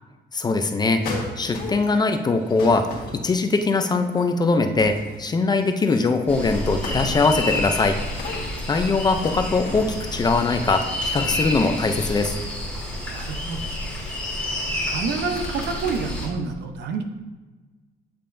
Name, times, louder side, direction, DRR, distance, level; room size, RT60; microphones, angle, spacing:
voice 1, 0.3-1.0 1.4-8.0 8.7-12.3, left 3 dB, 25° left, 6 dB, 0.4 m, -21 dB
sound 1, 1.0-2.1 2.4-4.3 4.6-5.3 5.6-10.5 11.0-11.5 11.8-12.2 14.6-16.0, left 3 dB, 55° left, 1.4 m, -36 dB
sound 2, 6.3-16.3, left 1 dB, 5° left, 2.0 m, -29 dB
voice 2, 13.1-13.8 14.9-17.0, right 5 dB, 70° right, 5 dB, 0.7 m, -28 dB
8.5 x 5.4 x 2.6 m, 1.3 s
cardioid pair, 140°, 18 cm